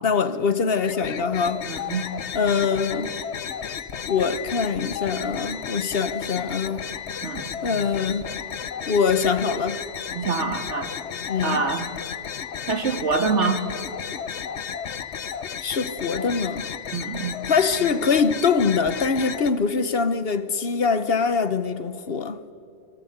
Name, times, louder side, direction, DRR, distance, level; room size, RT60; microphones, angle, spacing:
voice 1, 0.0-1.7 2.3-3.1 4.1-6.8 7.6-8.3 8.9-9.8 11.3-11.6 15.6-16.7 17.5-22.4, left 5 dB, 60° left, 1.2 m, -23 dB
sound 1, 0.8-19.5, left 7 dB, 80° left, 1.2 m, -33 dB
voice 2, 1.7-2.1 7.2-7.5 10.1-10.9 11.4-11.9 12.7-13.6 16.9-17.4, right 4 dB, 85° right, 2.2 m, -25 dB
27.0 x 23.5 x 8.0 m
omnidirectional pair, 1.2 m